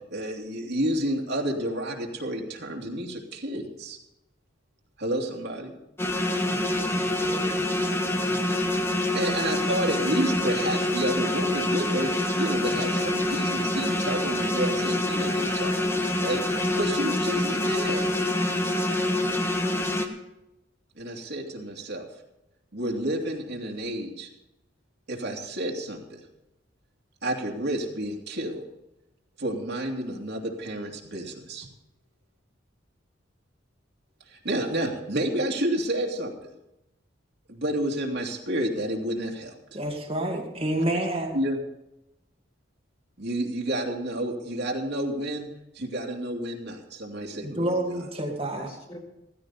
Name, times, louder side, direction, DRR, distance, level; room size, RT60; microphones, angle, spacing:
voice 1, 0.1-4.0 5.0-5.7 8.9-18.1 21.0-22.1 22.7-24.3 25.1-26.2 27.2-28.6 29.4-31.7 34.3-36.5 37.5-39.8 41.3-41.6 43.2-45.5 45.7-48.0, right 1 dB, 65° right, 0 dB, 2.7 m, -30 dB
sound 1, 6.0-20.1, left 1 dB, 15° left, 1.4 m, -26 dB
voice 2, 6.4-7.6 8.0-8.6 48.3-49.0, equal, 30° left, 0 dB, 4.4 m, -44 dB
voice 3, 39.7-41.3 47.4-48.7, right 1 dB, 30° right, 0 dB, 2.1 m, -28 dB
15.5 x 15.5 x 4.2 m, 0.90 s
head